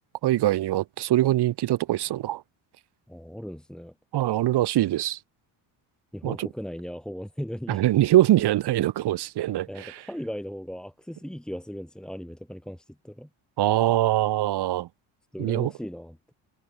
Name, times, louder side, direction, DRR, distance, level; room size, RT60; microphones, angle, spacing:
voice 1, 0.2-2.4 4.1-5.2 6.2-6.5 7.7-10.0 13.6-14.9 15.4-15.7, right 14 dB, 60° right, 3.5 m, -23 dB
voice 2, 3.1-3.9 6.1-7.8 9.7-13.3 15.3-16.3, equal, ahead, 4.0 m, -37 dB
cardioid pair, 130°, 45 cm